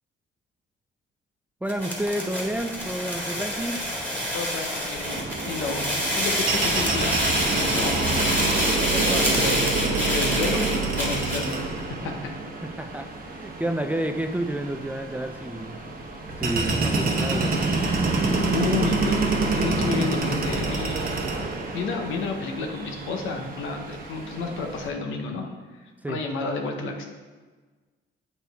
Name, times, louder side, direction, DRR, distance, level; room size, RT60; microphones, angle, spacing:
voice 1, 1.6-3.8 8.9-9.3 12.8-15.8 16.4-17.6 26.0-26.2, right 1 dB, 10° right, 6 dB, 0.4 m, -30 dB
sound 1, 1.7-11.5, equal, 10° left, 1.7 m, -27 dB
voice 2, 4.3-8.6 9.3-12.1 18.3-21.3 21.7-25.5 26.1-27.0, left 4 dB, 85° left, 3 dB, 0.9 m, -31 dB
sound 2, 5.0-24.9, right 3 dB, 45° right, 1.0 m, -27 dB
7.9 x 4.3 x 3.4 m, 1.4 s
cardioid pair, 90°, 20 cm